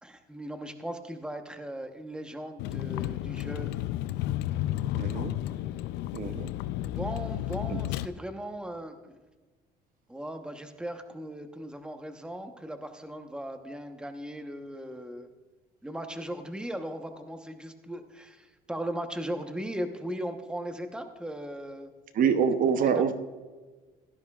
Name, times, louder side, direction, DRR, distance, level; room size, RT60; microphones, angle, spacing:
voice 1, 0.0-3.7 6.9-9.2 10.1-15.3 15.8-21.9, right 1 dB, 5° right, 6 dB, 1.0 m, -38 dB
Vehicle, 2.6-8.1, left 14 dB, 90° left, 0.5 m, -32 dB
voice 2, 4.9-5.4 6.1-6.5 7.7-7.8 22.1-23.1, right 7 dB, 55° right, 9 dB, 0.8 m, -25 dB
16.5 x 12.5 x 2.4 m, 1.3 s
cardioid pair, 110°, 17 cm